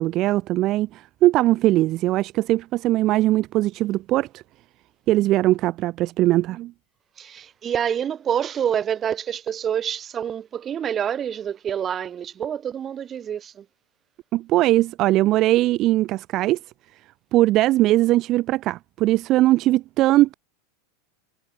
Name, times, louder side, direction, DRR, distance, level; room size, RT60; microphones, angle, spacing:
voice 1, 0.0-4.4 5.1-6.7 14.3-16.6 17.3-20.3, right 16 dB, 45° right, 3.8 m, -20 dB
voice 2, 7.2-13.6, right 9 dB, 30° right, 6.0 m, -27 dB
supercardioid pair, 115°, 0 cm